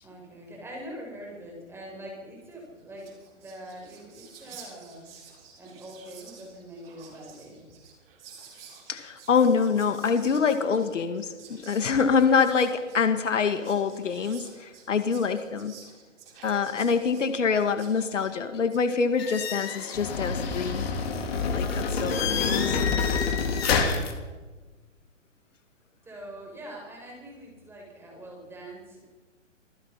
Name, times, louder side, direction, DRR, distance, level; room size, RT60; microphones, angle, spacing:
voice 1, 0.0-3.1 3.3-5.1 5.6-7.7 26.0-29.1, right 1 dB, 5° right, -1 dB, 7.6 m, -43 dB
Whispering, 2.6-2.7 2.9-18.9, right 6 dB, 45° right, 7.4 m, -51 dB
voice 2, 8.9-15.7 16.4-20.9 21.5-22.7, left 5 dB, 70° left, 8 dB, 2.2 m, -25 dB
sound 1, 19.2-24.1, left 5 dB, 50° left, 4.0 m, -27 dB
27.5 x 19.5 x 5.8 m, 1.3 s
hypercardioid pair, 140°, 38 cm